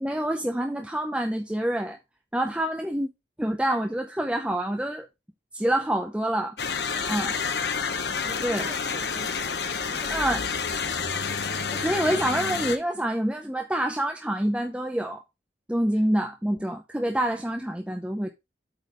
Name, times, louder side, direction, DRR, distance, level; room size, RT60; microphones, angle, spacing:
voice 1, 0.0-2.0 2.3-3.1 3.4-5.1 5.5-6.6 7.1-7.3 8.4-8.7 10.1-10.4 11.7-15.2 15.7-18.3, right 1 dB, 5° right, 0.6 m, -27 dB
sound 1, 6.6-12.8, left 5 dB, 70° left, 0.9 m, -29 dB
voice 2, 6.9-7.2 8.2-11.3 15.9-16.0, right 2 dB, 30° right, 1.7 m, -45 dB
8.3 x 3.9 x 4.9 m
head